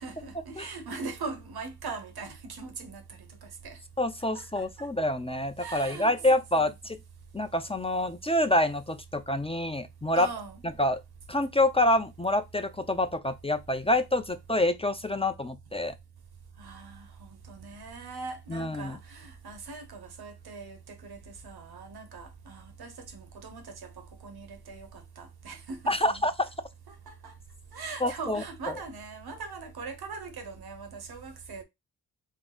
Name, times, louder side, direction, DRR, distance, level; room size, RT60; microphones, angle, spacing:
voice 1, 0.0-3.8 4.3-4.9 5.6-6.7 10.1-10.6 16.6-26.3 26.9-27.3 27.7-31.6, right 4 dB, 75° right, 1.2 m, -41 dB
voice 2, 4.0-7.0 7.3-10.3 10.8-11.0 11.3-15.9 18.5-19.0 25.9-26.3 28.0-28.4, left 1 dB, 15° left, 0.6 m, -27 dB
3.7 x 3.5 x 3.8 m
cardioid pair, 70°, 38 cm